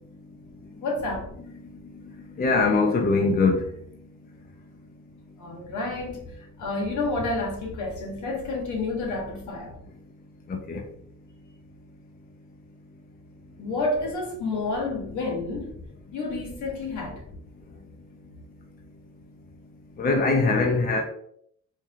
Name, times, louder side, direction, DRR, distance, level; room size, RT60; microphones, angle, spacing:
voice 1, 0.8-1.3 5.4-9.7 13.6-15.8 16.1-17.2, left 2 dB, 75° left, -1 dB, 1.4 m, -30 dB
voice 2, 2.4-3.7 10.5-10.8 20.0-21.0, left 3 dB, 30° left, 2 dB, 0.6 m, -22 dB
4.5 x 2.9 x 2.4 m, 0.67 s
cardioid pair, 90°, 30 cm